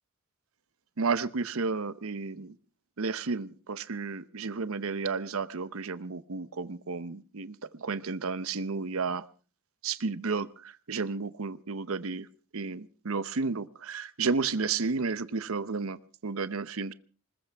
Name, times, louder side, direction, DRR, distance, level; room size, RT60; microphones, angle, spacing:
voice 1, 1.0-2.5 3.0-9.2 9.8-12.3 12.5-16.9, right 4 dB, 65° right, 15 dB, 0.8 m, -32 dB
20.5 x 20.0 x 3.5 m, 0.37 s
head